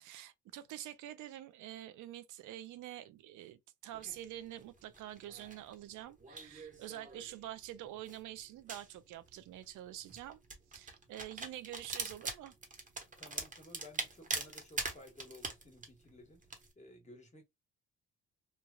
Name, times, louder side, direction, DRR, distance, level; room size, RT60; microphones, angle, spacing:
voice 1, 0.0-10.4 10.7-12.5, right 13 dB, 80° right, 0.5 m, -47 dB
sound 1, 3.9-16.7, right 3 dB, 25° right, 0.9 m, -44 dB
voice 2, 13.2-16.4 16.7-17.4, left 1 dB, 25° left, 1.3 m, -55 dB
3.2 x 2.2 x 2.2 m
cardioid pair, 90°, 30 cm